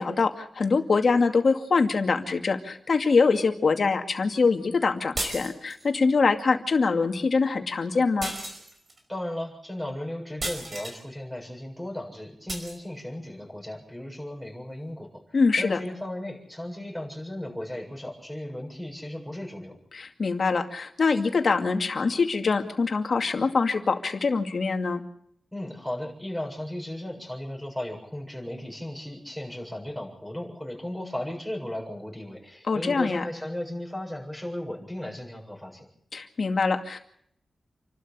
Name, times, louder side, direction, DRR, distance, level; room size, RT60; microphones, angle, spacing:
voice 1, 0.0-8.3 15.3-15.8 19.9-25.0 32.7-33.2 36.1-37.0, left 4 dB, 55° left, 6 dB, 2.3 m, -24 dB
sound 1, 5.2-5.9 8.2-9.0 10.4-11.0 12.5-12.8, right 2 dB, 45° right, 5.2 m, -34 dB
voice 2, 9.1-19.8 25.5-35.9, left 1 dB, ahead, 0 dB, 7.7 m, -36 dB
28.5 x 12.5 x 8.8 m, 0.68 s
wide cardioid pair, 80°, 0 cm